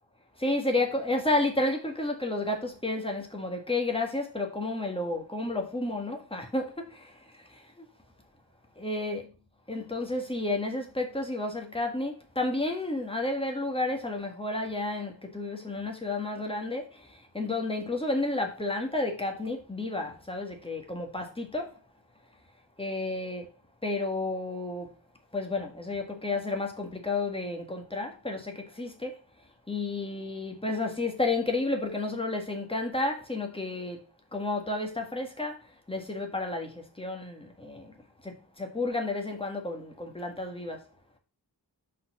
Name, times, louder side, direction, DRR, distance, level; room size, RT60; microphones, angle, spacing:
voice 1, 0.4-6.7 8.8-9.2 9.7-16.8 17.3-21.6 22.8-23.4 23.8-24.9 25.3-29.1 29.7-34.0 34.3-35.5 35.9-36.7 37.0-37.8 38.6-40.8, left 2 dB, 10° left, 1.6 m, -31 dB
5.5 x 4.2 x 5.4 m
wide cardioid pair, 105°, 44 cm